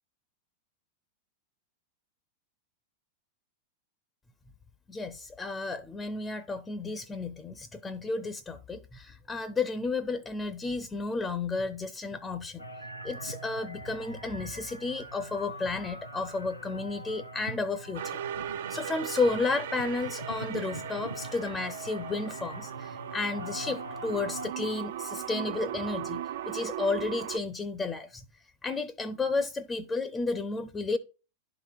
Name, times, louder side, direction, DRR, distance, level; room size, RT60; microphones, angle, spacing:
voice 1, 4.9-12.6 13.0-18.2 18.7-28.2 28.6-31.0, left 3 dB, 15° left, 0.5 m, -32 dB
sound 1, 12.6-24.5, right 1 dB, 85° left, 0.7 m, -42 dB
sound 2, 17.9-27.4, right 10 dB, 55° right, 0.4 m, -38 dB
11.5 x 3.9 x 2.3 m
figure-of-eight pair, 90°, 0 cm